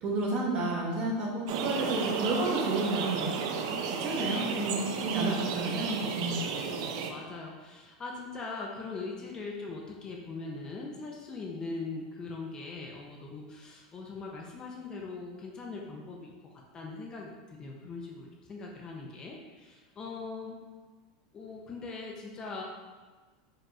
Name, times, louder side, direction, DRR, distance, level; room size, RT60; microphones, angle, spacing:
voice 1, 0.0-3.3 3.9-6.4, right 2 dB, 40° right, -3 dB, 1.0 m, -31 dB
sound 1, 1.5-7.1, right 6 dB, 60° right, 0.4 m, -33 dB
voice 2, 3.6-4.0 5.0-5.2 5.5-5.6 6.4-16.3 16.7-20.6 21.3-22.6, left 3 dB, 25° left, -1 dB, 0.4 m, -41 dB
4.8 x 2.9 x 2.3 m, 1.3 s
supercardioid pair, 140°, 3 cm